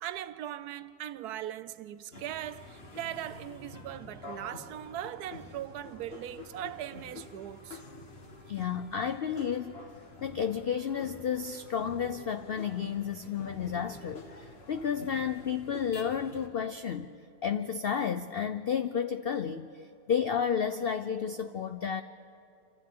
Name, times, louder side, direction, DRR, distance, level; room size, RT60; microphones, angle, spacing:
voice 1, 0.0-7.8, right 12 dB, 75° right, 1.1 m, -39 dB
sound 1, 2.1-16.5, left 3 dB, 40° left, 1.8 m, -48 dB
voice 2, 8.5-9.7 10.2-17.1 17.4-22.0, left 7 dB, 80° left, 0.5 m, -32 dB
28.0 x 25.5 x 3.8 m
omnidirectional pair, 1.7 m